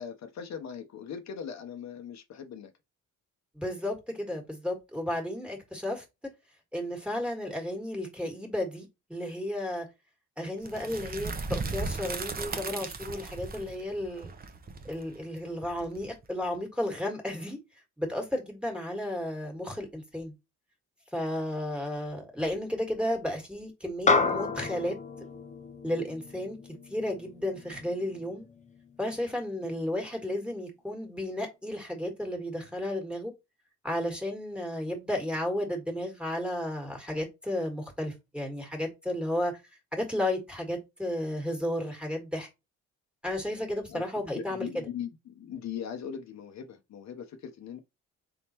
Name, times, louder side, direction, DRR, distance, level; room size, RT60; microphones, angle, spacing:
voice 1, 0.0-2.7 43.9-44.0 44.3-47.8, left 8 dB, 65° left, 0.8 m, -40 dB
voice 2, 3.5-6.0 6.7-9.9 10.4-14.3 14.9-17.6 18.0-20.3 21.1-24.9 25.8-26.6 26.9-28.5 29.0-33.3 33.8-39.5 39.9-42.5 43.2-44.8, left 1 dB, 5° right, 1.6 m, -33 dB
sound 1, 10.6-16.4, right 4 dB, 30° right, 0.8 m, -37 dB
sound 2, 24.1-28.7, left 4 dB, 25° left, 0.7 m, -30 dB
3.9 x 3.6 x 2.9 m
cardioid pair, 90°, 30 cm